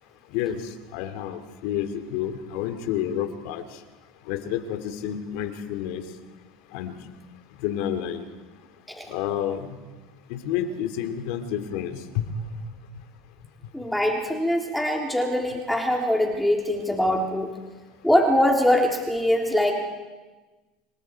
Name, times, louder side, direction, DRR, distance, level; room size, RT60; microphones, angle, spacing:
voice 1, 0.3-3.8 4.2-6.0 6.7-6.9 7.6-8.3 9.1-9.8 10.3-12.5, left 9 dB, 75° left, 8 dB, 2.5 m, -30 dB
voice 2, 13.7-17.5 18.0-19.7, left 1 dB, 5° left, 0 dB, 3.4 m, -23 dB
28.0 x 22.5 x 4.7 m, 1.2 s
supercardioid pair, 95°, 0 cm